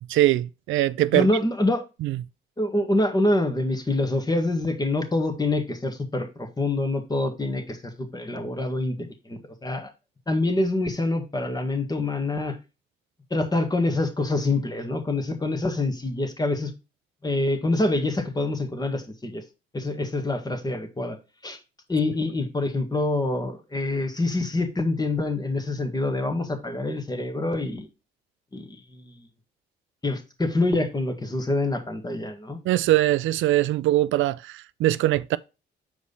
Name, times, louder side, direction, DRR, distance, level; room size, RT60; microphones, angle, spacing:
voice 1, 0.1-1.3 2.0-2.2 32.7-35.4, right 15 dB, 80° right, 0.4 m, -22 dB
voice 2, 1.1-1.8 2.6-9.9 10.3-12.6 13.3-16.7 17.2-19.4 19.7-21.2 21.4-21.6 21.9-27.9 28.5-29.1 30.0-32.6, left 2 dB, 20° left, 1.9 m, -26 dB
7.1 x 4.8 x 4.1 m
cardioid pair, 90°, 20 cm